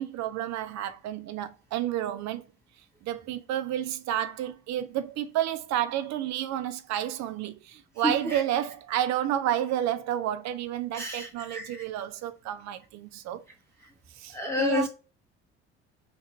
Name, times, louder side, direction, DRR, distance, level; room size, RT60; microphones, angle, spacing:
voice 1, 0.0-2.4 3.0-13.4 14.2-14.9, right 11 dB, 50° right, 0.5 m, -30 dB
voice 2, 8.0-8.4 10.9-11.8 14.3-14.9, left 2 dB, 5° left, 0.9 m, -30 dB
3.0 x 2.5 x 2.7 m
hypercardioid pair, 65°, 35 cm